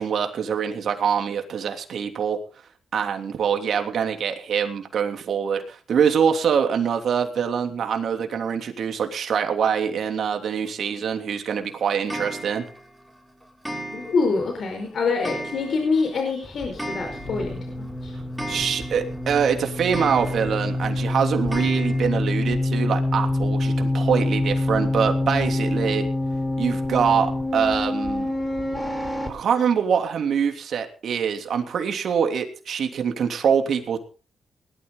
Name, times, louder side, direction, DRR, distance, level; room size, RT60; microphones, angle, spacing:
voice 1, 0.0-2.4 2.9-12.6 18.5-26.0 26.6-28.3 29.3-34.0, right 7 dB, 70° right, 5 dB, 3.1 m, -24 dB
Clock, 12.1-12.8 13.7-14.4 14.7-14.8 15.2-16.0 16.3-16.4 16.6-17.6 17.9-18.0 18.4-19.2 19.9-20.7 21.5-22.0, right 1 dB, 5° right, 5.9 m, -34 dB
voice 2, 13.9-18.2, left 4 dB, 65° left, 3 dB, 5.0 m, -25 dB
sound 1, 16.4-29.3, left 2 dB, 20° left, 4.7 m, -26 dB
19.5 x 13.0 x 3.9 m, 0.35 s
cardioid pair, 85°, 0 cm